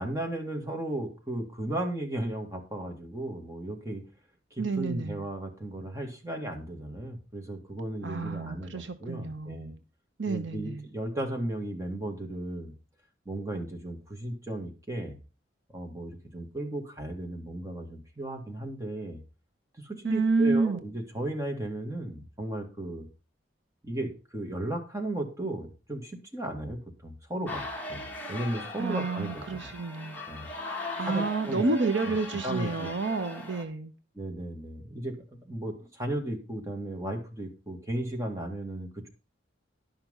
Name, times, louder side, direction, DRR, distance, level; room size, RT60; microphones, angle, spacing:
voice 1, 0.0-4.0 4.5-9.7 10.2-12.7 13.3-15.2 15.7-19.2 19.8-23.1 23.8-27.6 27.9-28.0 28.3-29.7 30.3-30.5 31.0-31.7 32.0-32.2 32.4-32.9 34.1-35.2 35.4-39.1, right 1 dB, 15° right, 2.1 m, -35 dB
voice 2, 4.6-5.2 8.0-9.8 10.2-10.8 20.0-20.8 28.8-30.2 31.0-33.9, right 3 dB, 75° right, 1.0 m, -29 dB
sound 1, 27.4-33.6, left 1 dB, 10° left, 1.9 m, -39 dB
11.5 x 5.9 x 5.6 m
head